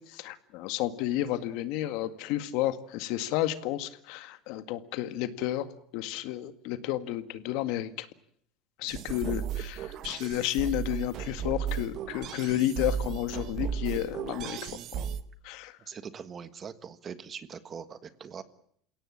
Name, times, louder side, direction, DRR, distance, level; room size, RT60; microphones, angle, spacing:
voice 1, 0.1-8.1 8.8-15.0 15.4-15.8, left 13 dB, 65° left, 11 dB, 1.9 m, -32 dB
sound 1, 8.9-15.2, right 8 dB, 45° right, 1.4 m, -35 dB
voice 2, 15.9-18.4, right 7 dB, 25° right, 13 dB, 1.5 m, -42 dB
29.0 x 17.5 x 8.6 m, 0.66 s
cardioid pair, 155°, 0 cm